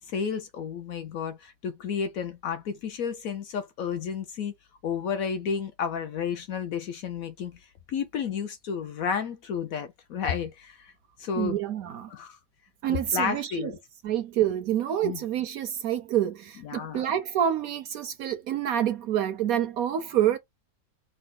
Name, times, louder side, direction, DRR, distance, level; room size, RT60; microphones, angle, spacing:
voice 1, 0.1-4.5 4.8-10.9 11.2-11.6 12.1-12.4 12.9-13.8 15.0-15.2 16.7-17.0, left 7 dB, 65° left, 0.9 m, -32 dB
voice 2, 11.4-12.1 12.8-13.7 14.0-20.4, right 10 dB, 70° right, 0.9 m, -27 dB
5.1 x 2.0 x 3.6 m
omnidirectional pair, 1.8 m